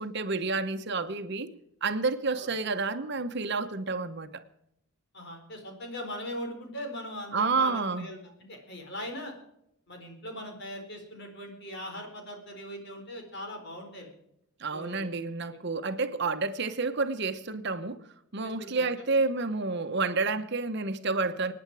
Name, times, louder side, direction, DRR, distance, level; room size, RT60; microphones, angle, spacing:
voice 1, 0.0-1.5 1.8-4.4 7.3-8.1 14.6-18.0 18.3-21.5, right 3 dB, 55° right, 9 dB, 1.0 m, -29 dB
voice 2, 5.1-8.2 8.5-9.3 9.9-14.1 14.7-15.1 15.5-15.6 18.4-19.2, equal, 55° left, 3 dB, 4.4 m, -40 dB
25.0 x 9.6 x 4.8 m, 0.79 s
head